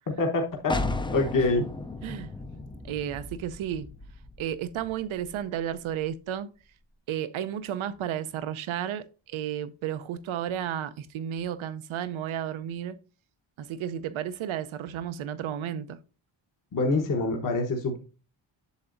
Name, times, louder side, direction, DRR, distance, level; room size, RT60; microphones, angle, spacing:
voice 1, 0.2-0.8 1.1-1.6 16.7-18.0, left 2 dB, 40° left, 1.1 m, -25 dB
sound 1, 0.7-6.2, left 2 dB, 10° left, 0.4 m, -35 dB
voice 2, 2.8-3.9 4.4-6.5 7.1-13.0 13.6-16.0, right 10 dB, 85° right, 0.7 m, -33 dB
8.3 x 6.8 x 2.5 m
wide cardioid pair, 130°, 47 cm